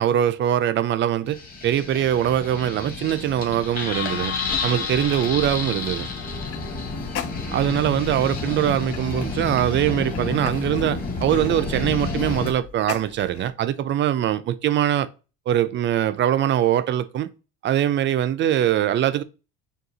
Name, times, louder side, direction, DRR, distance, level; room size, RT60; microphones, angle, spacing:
voice 1, 0.0-1.4 1.6-4.4 4.6-6.1 7.5-15.1 15.5-17.3 17.6-19.2, right 11 dB, 35° right, 0.4 m, -22 dB
Caçadors de sons - El tren de Joan Miró, 1.3-12.5, left 3 dB, 25° left, 1.4 m, -30 dB
sound 1, 3.9-13.5, left 9 dB, 45° left, 0.5 m, -37 dB
6.5 x 2.4 x 2.7 m
cardioid pair, 120°, 32 cm